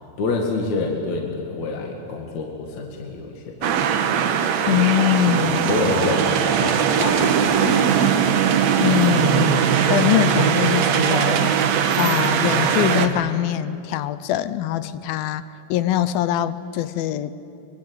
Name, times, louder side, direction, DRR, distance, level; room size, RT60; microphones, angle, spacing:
voice 1, 0.2-3.7 5.4-7.8, left 3 dB, 50° left, 1 dB, 3.0 m, -27 dB
sound 1, 3.6-13.1, right 7 dB, 65° right, 1.7 m, -20 dB
voice 2, 4.7-5.7 8.8-11.7 12.0-15.4 15.7-17.3, left 12 dB, 75° left, 14 dB, 2.3 m, -23 dB
24.0 x 23.0 x 9.4 m, 2.6 s
omnidirectional pair, 4.7 m